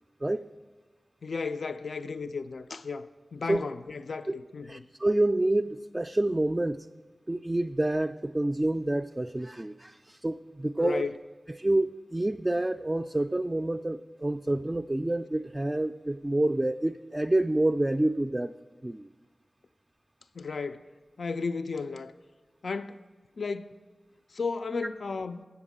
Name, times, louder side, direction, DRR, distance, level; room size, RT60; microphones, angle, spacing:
voice 1, 1.2-4.8 10.8-11.1 20.4-20.8 21.2-22.1 22.6-23.0 23.4-23.8 24.3-25.5, left 4 dB, 85° left, 0.3 m, -34 dB
voice 2, 4.7-6.8 7.3-11.1 11.6-18.5 18.8-19.1, right 1 dB, 25° right, 0.3 m, -28 dB
7.9 x 7.1 x 7.4 m
cardioid pair, 45°, 0 cm